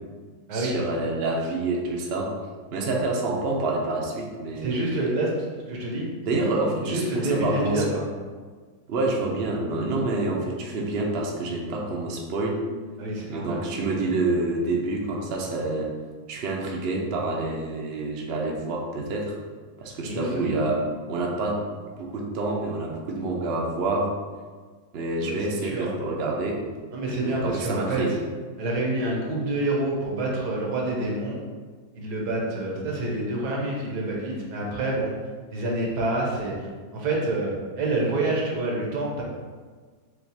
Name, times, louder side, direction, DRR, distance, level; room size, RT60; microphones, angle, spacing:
voice 1, 0.5-2.3 2.7-5.1 6.2-7.9 8.9-12.7 13.3-15.9 16.3-19.4 19.8-20.8 21.1-21.6 22.0-24.1 24.9-26.6 27.2-28.2, right 2 dB, 60° right, -1 dB, 0.6 m, -27 dB
voice 2, 4.6-5.4 5.7-6.1 6.8-8.0 13.0-13.6 20.0-20.7 25.2-25.9 26.9-28.0 28.6-31.4 31.9-35.1 35.5-36.5 36.9-39.2, right 2 dB, 80° right, -3 dB, 1.5 m, -27 dB
6.3 x 2.4 x 2.8 m, 1.5 s
omnidirectional pair, 1.7 m